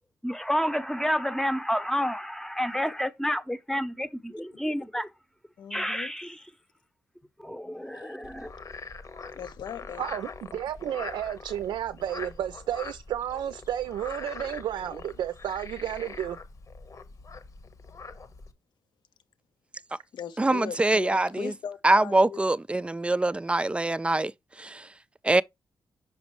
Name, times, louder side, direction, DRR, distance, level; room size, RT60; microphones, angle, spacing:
voice 1, 0.2-5.1 5.7-6.4 7.4-8.5, equal, 5° left, 0.7 m, -29 dB
voice 2, 5.6-6.1 7.9-8.2 9.3-10.0 20.1-22.4, left 8 dB, 75° left, 0.8 m, -39 dB
Frog, 8.2-18.5, left 4 dB, 45° left, 1.1 m, -43 dB
voice 3, 10.0-16.4, right 10 dB, 85° right, 0.5 m, -32 dB
voice 4, 20.4-21.3 21.8-24.3 24.6-24.7 25.2-25.4, right 2 dB, 15° right, 0.3 m, -23 dB
5.9 x 5.2 x 3.1 m
cardioid pair, 80°, 8 cm